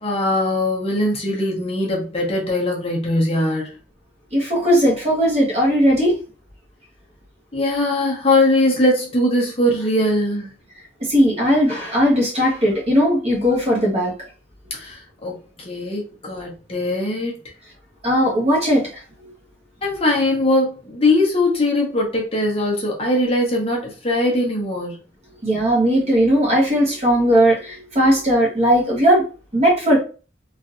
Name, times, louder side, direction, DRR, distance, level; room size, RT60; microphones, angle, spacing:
voice 1, 0.0-3.7 7.5-10.5 14.7-17.4 19.8-25.0, left 1 dB, 30° left, 0.9 m, -21 dB
voice 2, 4.3-6.2 11.0-14.1 18.0-18.9 25.4-29.2 29.5-30.0, equal, 35° right, 1.1 m, -17 dB
3.2 x 2.6 x 2.5 m
head